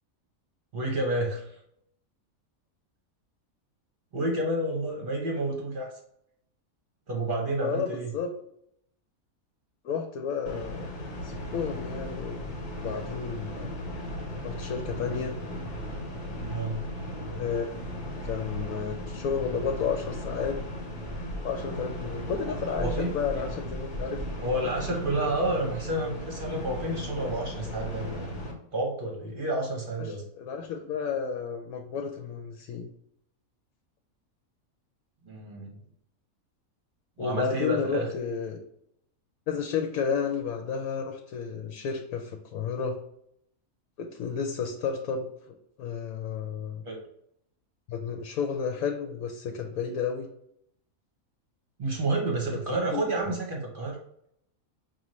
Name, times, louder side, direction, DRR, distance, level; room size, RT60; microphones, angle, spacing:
voice 1, 0.7-1.6 4.1-5.9 7.1-8.1 16.4-16.8 22.5-23.4 24.4-28.4 28.7-30.2 35.2-35.8 37.2-38.1 46.8-47.0 51.8-54.0, right 1 dB, 45° right, 0 dB, 0.9 m, -30 dB
voice 2, 7.6-8.3 9.8-12.5 12.8-13.8 14.4-15.4 17.4-17.7 18.2-20.6 21.4-24.3 30.0-32.9 37.2-38.6 39.5-43.0 44.0-45.3 45.8-46.8 47.9-50.3 52.7-53.0, left 6 dB, 80° left, 3 dB, 1.1 m, -32 dB
sound 1, 10.5-28.5, equal, 60° left, 1.4 m, -36 dB
5.5 x 2.5 x 3.1 m, 0.72 s
omnidirectional pair, 1.5 m